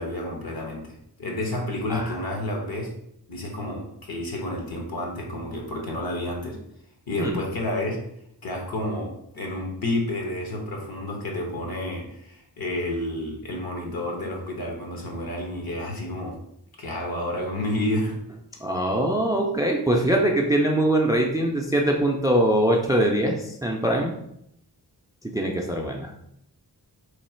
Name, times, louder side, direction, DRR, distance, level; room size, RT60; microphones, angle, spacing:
voice 1, 0.0-2.9 3.3-6.6 7.1-8.0 8.4-16.4 16.8-18.2, left 1 dB, 60° left, 1 dB, 1.0 m, -30 dB
voice 2, 18.6-24.1 25.2-26.1, right 1 dB, 10° right, 1 dB, 0.4 m, -22 dB
3.1 x 2.4 x 4.3 m, 0.75 s
wide cardioid pair, 90°, 41 cm